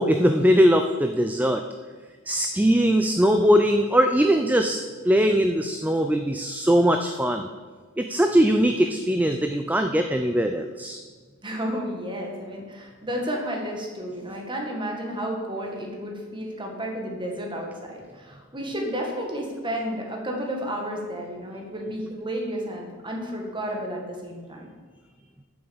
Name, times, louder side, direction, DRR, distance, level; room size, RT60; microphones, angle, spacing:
voice 1, 0.0-1.6 2.3-4.8 5.0-7.5 8.0-11.0, equal, 5° right, 6 dB, 0.4 m, -21 dB
voice 2, 11.4-24.7, equal, 25° right, 0 dB, 1.8 m, -32 dB
8.6 x 7.0 x 7.1 m, 1.5 s
head